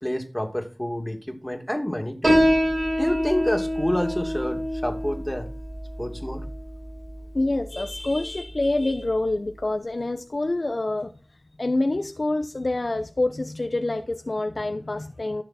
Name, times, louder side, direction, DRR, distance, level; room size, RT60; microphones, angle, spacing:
voice 1, 0.0-2.4 3.0-5.5 6.0-6.5, left 1 dB, 10° left, 2.6 m, -28 dB
Piano, 2.2-9.3, equal, 55° right, 6.9 m, -26 dB
voice 2, 7.3-11.1 11.6-15.4, left 2 dB, 55° left, 0.9 m, -26 dB
14.5 x 6.6 x 4.3 m
wide cardioid pair, 55°, 0 cm